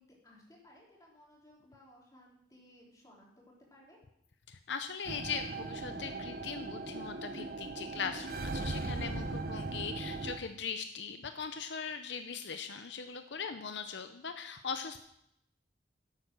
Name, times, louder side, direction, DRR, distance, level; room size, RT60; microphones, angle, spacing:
voice 1, 0.0-4.0, left 1 dB, 20° left, -4 dB, 3.5 m, -60 dB
voice 2, 4.5-15.0, left 6 dB, 70° left, 8 dB, 0.7 m, -40 dB
sound 1, 5.1-10.4, right 3 dB, 50° right, 0.7 m, -39 dB
11.5 x 8.3 x 6.2 m, 0.77 s
head